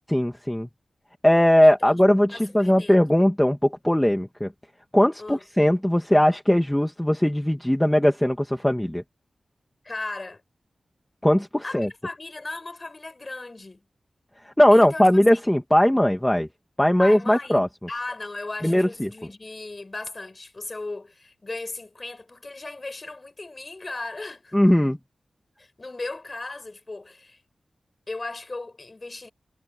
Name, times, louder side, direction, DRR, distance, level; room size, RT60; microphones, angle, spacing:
voice 1, 0.1-0.7 1.2-4.5 4.9-9.0 11.2-11.9 14.6-16.5 16.8-17.7 18.6-19.1 24.5-25.0, left 1 dB, 5° left, 1.9 m, -19 dB
voice 2, 1.6-2.0 2.3-3.0 5.2-5.5 9.8-10.4 11.6-13.8 14.7-15.1 17.0-17.6 17.9-24.6 25.6-27.4 28.1-29.3, left 2 dB, 30° left, 7.3 m, -36 dB
wide cardioid pair, 120°, 0 cm